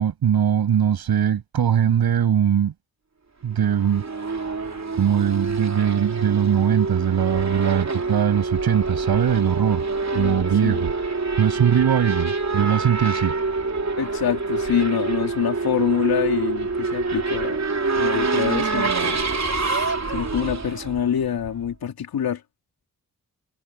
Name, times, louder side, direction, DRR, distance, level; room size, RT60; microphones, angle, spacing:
voice 1, 0.0-2.7 3.4-4.0 5.0-9.9 10.1-10.9 11.4-13.4, right 9 dB, 90° right, 7.3 m, -21 dB
Race car auto racing / Accelerating revving vroom, 3.5-21.7, right 3 dB, 50° right, 3.4 m, -26 dB
voice 2, 10.1-10.8 14.0-17.6 17.9-19.2 19.5-22.4, left 9 dB, 80° left, 3.3 m, -26 dB
supercardioid pair, 45°, 36 cm